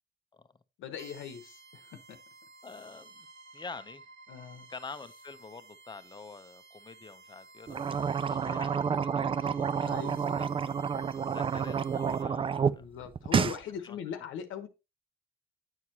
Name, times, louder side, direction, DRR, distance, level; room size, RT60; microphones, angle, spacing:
voice 1, 0.8-2.2 4.3-4.7 9.8-10.7 11.0-11.1 12.8-14.7, left 8 dB, 80° left, 0.9 m, -41 dB
sound 1, 1.0-12.2, right 3 dB, 85° right, 0.9 m, -54 dB
voice 2, 2.6-3.3 3.5-4.1 4.7-10.0 10.4-10.5 11.3-12.8 13.8-14.0, left 4 dB, 20° left, 0.7 m, -47 dB
sound 2, 7.7-12.7 13.1-13.6, right 6 dB, 25° right, 0.3 m, -29 dB
9.7 x 4.6 x 2.8 m
cardioid pair, 90°, 20 cm